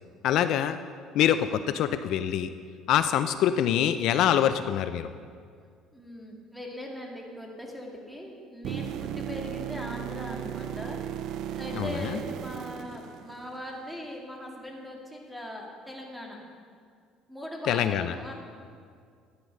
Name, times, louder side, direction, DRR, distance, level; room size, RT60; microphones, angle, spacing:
voice 1, 0.2-0.8 1.1-2.5 2.9-5.1 11.7-12.2 17.7-18.1, left 10 dB, 65° left, 11 dB, 0.5 m, -25 dB
voice 2, 5.9-11.0 11.5-16.4 17.3-18.3, left 1 dB, ahead, -1 dB, 2.3 m, -40 dB
sound 1, 8.6-13.7 17.7-17.8, right 10 dB, 65° right, 0.4 m, -36 dB
12.5 x 9.6 x 6.4 m, 2.2 s
cardioid pair, 125°, 0 cm